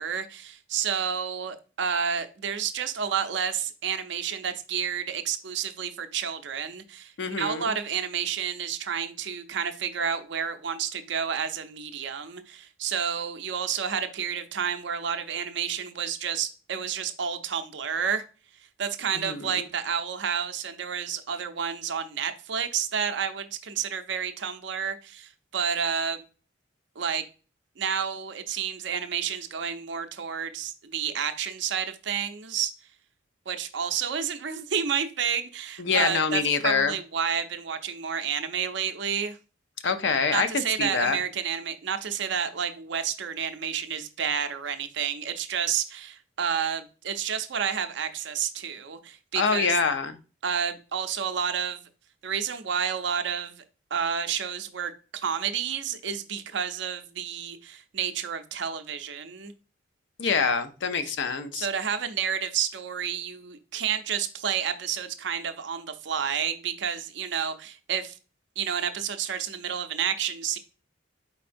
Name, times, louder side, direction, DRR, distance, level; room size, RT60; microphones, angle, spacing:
voice 1, 0.0-18.2 18.8-26.2 27.0-27.2 27.8-32.7 33.5-39.4 40.3-49.8 50.4-51.8 52.2-53.6 53.9-59.5 61.0-61.1 61.5-68.2 68.6-70.6, right 7 dB, 65° right, 8 dB, 0.5 m, -30 dB
voice 2, 7.2-7.7 19.2-19.6 35.8-36.9 39.8-41.2 49.4-50.2 60.2-61.7, left 5 dB, 65° left, 10 dB, 0.5 m, -25 dB
4.6 x 4.2 x 2.5 m, 0.35 s
head